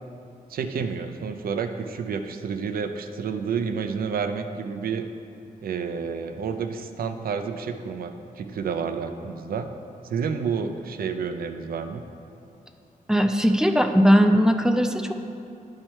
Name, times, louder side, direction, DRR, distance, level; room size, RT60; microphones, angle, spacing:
voice 1, 0.5-5.0 5.6-9.7 10.1-12.0, right 6 dB, 85° right, 7 dB, 0.5 m, -30 dB
voice 2, 13.1-15.2, equal, 5° right, 5 dB, 0.4 m, -19 dB
10.5 x 4.4 x 4.5 m, 2.5 s
wide cardioid pair, 120°, 15 cm